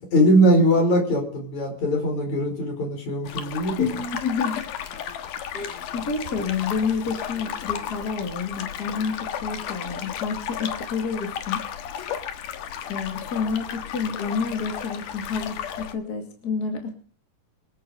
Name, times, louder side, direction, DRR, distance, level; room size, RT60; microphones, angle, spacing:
voice 1, 0.1-3.9, equal, 60° left, 3 dB, 6.1 m, -21 dB
sound 1, 3.2-15.9, left 9 dB, 80° left, 2.9 m, -33 dB
voice 2, 3.8-4.7 5.5-11.6 12.9-17.0, left 5 dB, 30° left, 4 dB, 2.7 m, -29 dB
24.5 x 8.7 x 5.0 m, 0.43 s
omnidirectional pair, 3.7 m